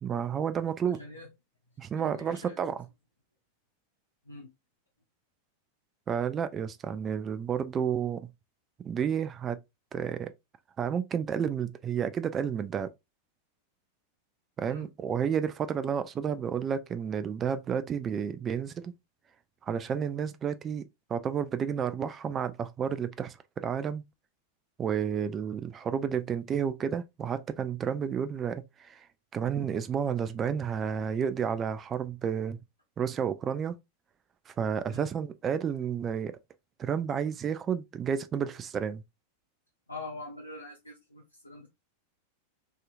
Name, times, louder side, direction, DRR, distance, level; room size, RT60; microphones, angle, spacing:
voice 1, 0.0-1.0 1.8-2.9 6.1-8.3 8.8-9.6 9.9-10.3 10.8-12.9 14.6-18.9 19.6-23.4 23.6-24.0 24.8-29.1 29.3-32.6 33.0-33.8 34.5-36.4 36.8-39.0, right 7 dB, 25° right, 0.3 m, -31 dB
voice 2, 2.0-2.6 4.3-4.5 14.7-14.9 34.9-35.1 39.9-41.7, left 2 dB, 80° left, 0.6 m, -44 dB
2.7 x 2.4 x 2.5 m
figure-of-eight pair, 90°, 0 cm